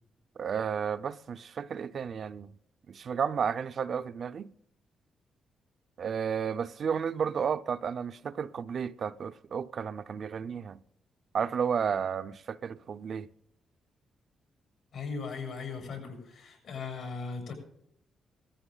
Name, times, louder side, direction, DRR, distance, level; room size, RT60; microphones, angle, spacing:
voice 1, 0.4-2.5 2.9-4.5 6.0-10.8 11.3-13.3, right 7 dB, 60° right, 0.5 m, -32 dB
voice 2, 14.9-17.5, left 4 dB, 75° left, 7.0 m, -38 dB
18.0 x 14.0 x 3.9 m
cardioid pair, 70°, 0 cm